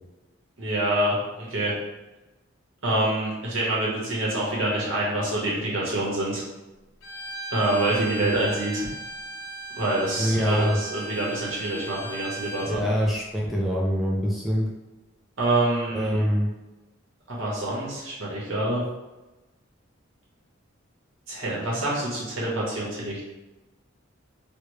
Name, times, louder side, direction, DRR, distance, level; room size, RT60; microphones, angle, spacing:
voice 1, 0.6-1.7 2.8-6.4 7.5-8.9 9.8-12.8 15.4-16.2 17.3-18.8 21.3-23.2, right 1 dB, 70° right, -5 dB, 1.2 m, -26 dB
Bowed string instrument, 7.0-12.8, right 2 dB, 90° left, 0.7 m, -37 dB
voice 2, 8.0-8.3 10.2-10.8 12.7-14.7 15.9-16.5, equal, ahead, -4 dB, 0.3 m, -24 dB
3.3 x 2.3 x 3.1 m, 1.1 s
head